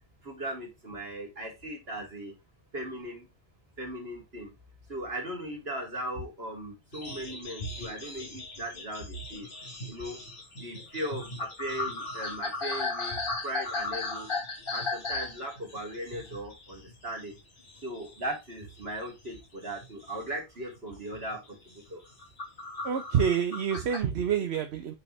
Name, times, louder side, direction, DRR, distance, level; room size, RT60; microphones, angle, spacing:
voice 1, 0.2-2.3 2.7-3.3 3.8-4.5 4.9-9.5 9.9-10.2 10.5-14.3 14.7-17.4 17.8-22.0, right 1 dB, 70° right, 1 dB, 2.9 m, -38 dB
sound 1, 6.9-17.4 17.6-18.3 18.6-20.1 20.6-20.8 21.1-21.4 21.9-24.0, left 3 dB, 60° left, 1.9 m, -37 dB
voice 2, 22.8-24.9, right 7 dB, 90° right, 6 dB, 1.1 m, -27 dB
9.2 x 4.3 x 3.2 m, 0.22 s
omnidirectional pair, 1.1 m